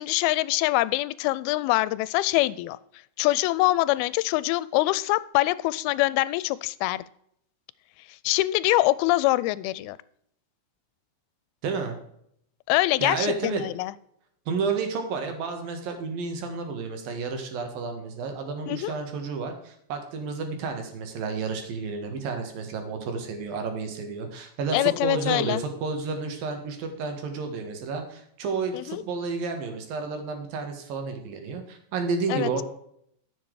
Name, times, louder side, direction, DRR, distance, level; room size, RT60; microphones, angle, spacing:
voice 1, 0.0-2.8 3.2-7.0 8.2-10.0 12.7-13.9 18.7-18.9 24.7-25.6 28.7-29.0 32.3-32.5, left 18 dB, 90° left, 18 dB, 2.4 m, -24 dB
voice 2, 11.6-12.0 13.0-13.6 14.5-32.6, right 4 dB, 70° right, 5 dB, 3.3 m, -31 dB
10.0 x 7.4 x 4.7 m, 0.70 s
omnidirectional pair, 4.3 m